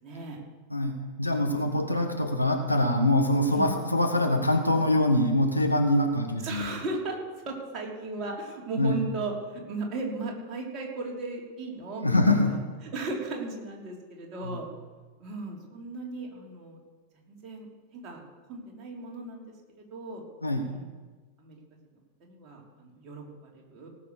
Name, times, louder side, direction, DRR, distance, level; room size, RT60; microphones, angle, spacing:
voice 1, 0.0-0.4 3.5-3.7 6.4-7.2 7.5-14.7 15.2-16.8 17.3-18.2 18.5-19.4 19.8-20.2 20.6-20.9 21.4-21.6 22.2-23.9, right 2 dB, 35° right, -1 dB, 3.5 m, -36 dB
voice 2, 0.7-6.7 8.8-9.0 12.0-12.6 14.4-14.6 20.4-20.7, left 1 dB, 85° left, 4 dB, 1.5 m, -24 dB
18.0 x 6.7 x 6.9 m, 1.3 s
figure-of-eight pair, 90°, 0 cm